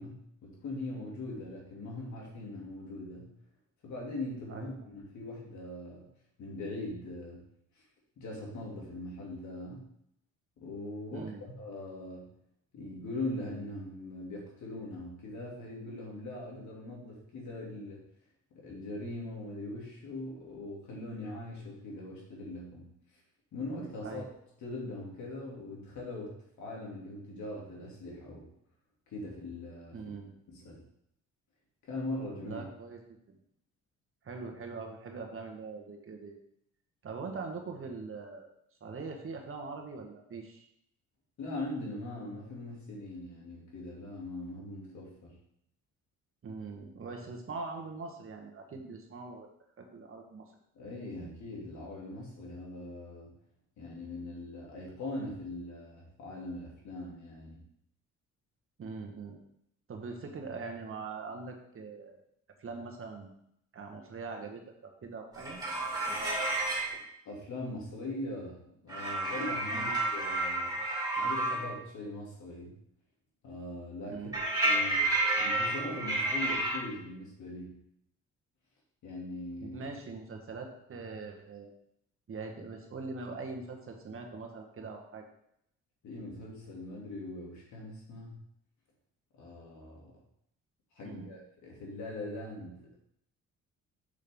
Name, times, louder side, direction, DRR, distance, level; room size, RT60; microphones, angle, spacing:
voice 1, 0.0-3.3 3.8-6.1 6.4-7.4 8.2-9.8 10.6-12.3 12.7-18.0 18.5-22.9 23.5-24.3 24.6-28.5 29.1-30.0 30.5-30.8 31.8-32.6 41.4-45.3 50.7-53.3 53.8-57.6 67.2-70.7 71.2-72.7 73.4-74.2 74.6-75.1 75.4-77.8 79.0-79.8 86.0-88.4 89.3-90.1 91.0-92.8, left 2 dB, 70° left, -2 dB, 2.8 m, -41 dB
voice 2, 4.5-4.9 11.1-11.4 24.0-24.3 29.9-30.3 32.4-33.0 33.3-33.4 34.2-36.4 37.0-38.5 38.8-40.6 46.4-49.5 49.8-50.5 58.8-59.4 59.9-62.2 62.6-63.3 63.7-65.6 66.0-66.3 69.7-69.9 74.1-74.5 79.6-81.7 82.3-85.3 91.0-91.3, right 4 dB, 45° right, 2 dB, 1.4 m, -42 dB
sound 1, 65.3-66.9 68.9-71.7 74.3-76.8, right 2 dB, 15° right, 3.2 m, -30 dB
6.5 x 6.4 x 3.7 m, 0.74 s
cardioid pair, 90°, 30 cm